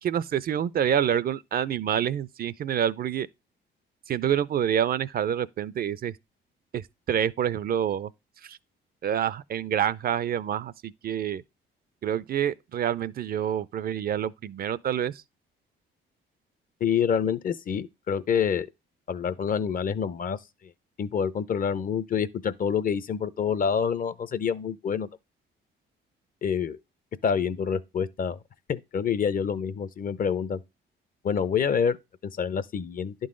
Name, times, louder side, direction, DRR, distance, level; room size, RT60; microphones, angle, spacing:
voice 1, 0.0-3.3 4.1-6.1 6.7-8.1 8.4-8.6 9.0-11.4 12.0-15.2, right 9 dB, 50° right, 0.4 m, -27 dB
voice 2, 16.8-18.7 19.1-20.4 21.0-25.1 26.4-26.8 27.2-28.4 28.7-30.6 31.2-32.0 32.2-33.1, left 7 dB, 45° left, 0.5 m, -27 dB
11.0 x 3.9 x 3.7 m
cardioid pair, 90°, 20 cm